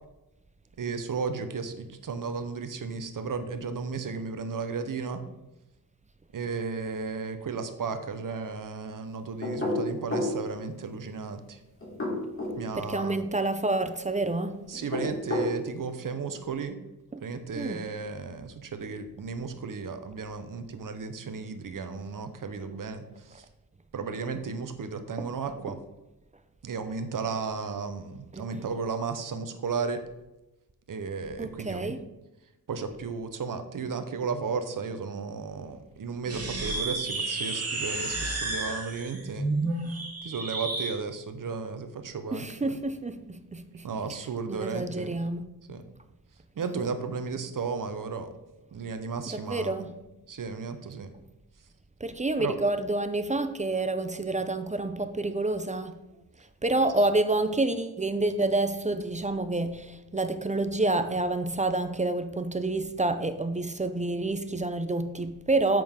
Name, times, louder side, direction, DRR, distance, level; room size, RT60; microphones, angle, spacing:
voice 1, 0.8-5.2 6.3-11.6 12.5-13.3 14.7-16.8 17.2-23.0 23.3-23.4 23.9-25.8 26.6-30.0 30.9-31.9 32.7-39.5 40.2-42.8 43.8-45.2 45.7-45.8 46.6-48.3 48.7-49.7 50.3-51.1 52.4-52.5, right 5 dB, 60° right, 1.0 m, -34 dB
sound 1, 9.4-10.4 11.8-12.6 14.7-15.5, left 2 dB, 35° left, 3.3 m, -29 dB
voice 2, 12.7-14.6 17.1-17.3 17.5-17.8 25.2-25.3 28.3-28.7 31.4-32.0 42.3-43.8 44.5-45.5 49.3-49.9 52.0-56.0 56.6-65.8, right 2 dB, 20° right, 0.6 m, -28 dB
sound 2, 36.2-41.0, right 2 dB, 40° right, 2.8 m, -31 dB
9.2 x 7.7 x 3.7 m
wide cardioid pair, 115°, 37 cm